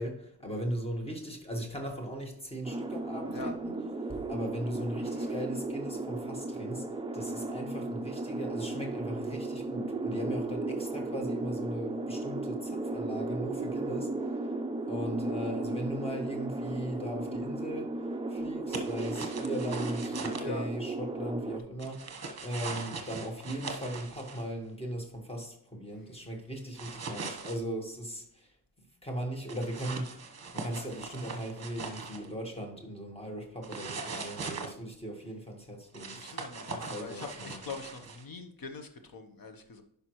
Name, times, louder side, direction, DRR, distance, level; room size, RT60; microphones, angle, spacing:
voice 1, 0.0-3.8 4.1-6.8 7.1-14.1 14.9-17.9 18.3-28.5 29.0-30.2 30.5-37.6, right 1 dB, 15° left, 2 dB, 1.4 m, -38 dB
sound 1, 2.6-21.6, right 2 dB, 15° right, 0.3 m, -35 dB
sound 2, 18.7-20.4 21.8-24.4 26.8-27.6 29.5-32.3 33.6-34.7 35.9-38.2, right 4 dB, 40° right, 1.1 m, -40 dB
voice 2, 36.1-39.8, left 3 dB, 55° left, 6 dB, 1.0 m, -42 dB
11.0 x 5.1 x 3.0 m, 0.73 s
wide cardioid pair, 170°, 41 cm